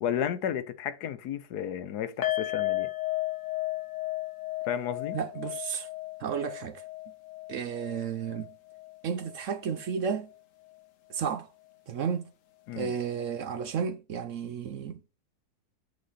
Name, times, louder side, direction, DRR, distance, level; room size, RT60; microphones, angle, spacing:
voice 1, 0.0-2.9 4.7-5.2 12.7-12.9, left 9 dB, 80° left, 1.3 m, -32 dB
sound 1, 2.2-9.4 9.7-9.9 10.3-10.4, left 17 dB, 60° left, 1.2 m, -34 dB
voice 2, 5.1-5.9 6.2-6.8 7.5-8.5 9.0-10.3 11.1-11.5 11.9-12.3 12.8-15.0, right 7 dB, 65° right, 0.9 m, -32 dB
8.4 x 4.2 x 4.0 m
omnidirectional pair, 1.7 m